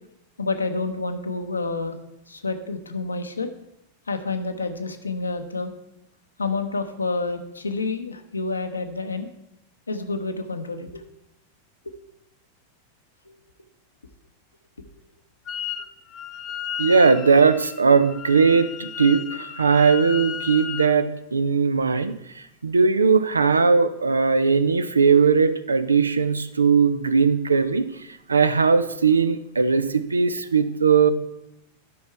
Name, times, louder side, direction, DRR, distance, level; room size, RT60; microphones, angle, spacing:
voice 1, 0.4-2.0 2.3-3.5 4.1-5.7 6.4-9.3 9.9-11.0 11.8-11.9 13.3-13.4 14.8-14.9, left 3 dB, 75° left, 8 dB, 0.8 m, -29 dB
Wind instrument woodwind instrument, 15.5-15.9 16.1-20.9, left 9 dB, 30° left, 0.6 m, -34 dB
voice 2, 16.8-27.9 28.3-31.1, right 5 dB, 75° right, 13 dB, 0.5 m, -19 dB
12.0 x 5.4 x 4.6 m, 0.83 s
figure-of-eight pair, 90°, 0 cm